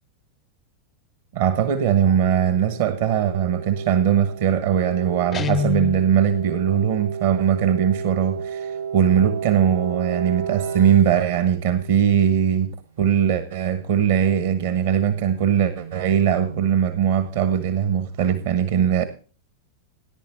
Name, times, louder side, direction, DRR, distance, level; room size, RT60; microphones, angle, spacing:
voice 1, 1.3-12.7 13.0-19.0, right 9 dB, 55° right, 1.1 m, -20 dB
sound 1, 1.9-11.9 14.0-16.7, right 7 dB, 80° right, 4.8 m, -33 dB
Guitar, 5.3-6.1, left 7 dB, 25° left, 0.5 m, -25 dB
18.5 x 10.5 x 2.7 m
figure-of-eight pair, 90°, 0 cm